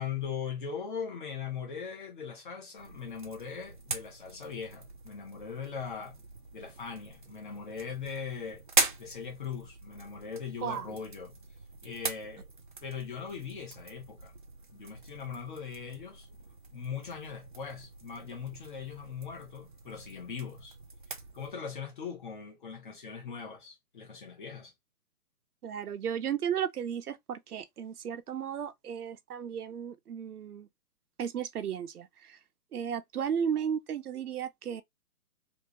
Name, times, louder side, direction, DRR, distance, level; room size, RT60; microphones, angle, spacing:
voice 1, 0.0-6.2 6.5-8.6 9.0-11.3 11.8-12.5 12.8-14.3 14.7-16.3 16.7-20.7 21.3-24.7, left 6 dB, 35° left, 1.3 m, -40 dB
sound 1, 2.8-21.5, right 4 dB, 35° right, 0.5 m, -40 dB
voice 2, 10.6-11.0 25.6-30.7 31.2-32.4 32.7-34.8, right 8 dB, 80° right, 0.8 m, -34 dB
3.5 x 2.7 x 2.9 m
hypercardioid pair, 170°, 44 cm